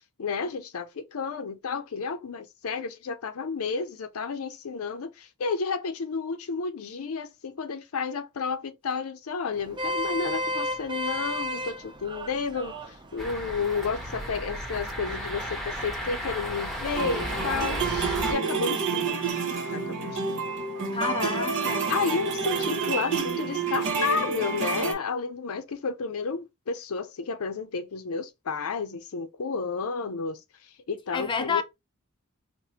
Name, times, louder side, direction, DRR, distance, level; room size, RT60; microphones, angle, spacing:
voice 1, 0.2-19.2 19.7-20.4 21.9-30.4 30.9-31.6, left 5 dB, 75° left, 0.5 m, -31 dB
Vehicle horn car horn honking, 9.5-15.9, left 1 dB, 20° right, 0.5 m, -35 dB
sound 1, 13.2-18.3, equal, ahead, 1.0 m, -34 dB
sound 2, 16.9-24.9, right 5 dB, 60° right, 1.0 m, -29 dB
voice 2, 20.9-21.9 31.1-31.6, left 5 dB, 20° left, 0.5 m, -29 dB
4.8 x 2.2 x 2.8 m
head